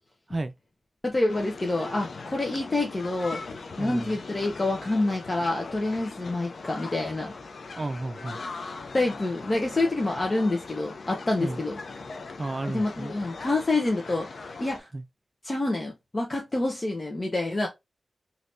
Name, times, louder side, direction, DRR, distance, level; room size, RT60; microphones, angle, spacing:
voice 1, 1.0-3.4 3.8-7.3 8.9-11.8 12.7-14.9 15.4-17.7, left 2 dB, 40° left, 0.8 m, -27 dB
sound 1, 1.3-14.8, left 4 dB, 75° left, 0.5 m, -40 dB
voice 2, 3.8-4.2 7.8-8.4 11.4-11.6 12.4-13.1 14.9-15.0, right 2 dB, 45° right, 0.4 m, -32 dB
3.3 x 2.8 x 2.6 m
cardioid pair, 55°, 0 cm